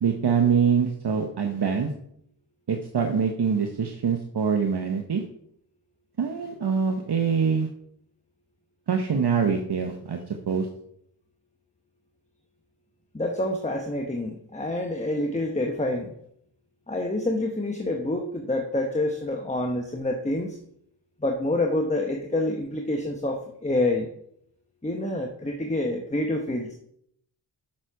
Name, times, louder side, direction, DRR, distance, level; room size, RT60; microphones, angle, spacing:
voice 1, 0.0-1.9 2.7-5.2 6.2-7.7 8.9-10.2 10.5-10.7, right 6 dB, 65° right, 4 dB, 0.9 m, -24 dB
voice 2, 13.1-16.1 16.9-20.6 21.2-24.1 24.8-26.8, left 1 dB, 15° left, 3 dB, 1.0 m, -27 dB
7.3 x 6.5 x 4.6 m, 0.70 s
cardioid pair, 45°, 43 cm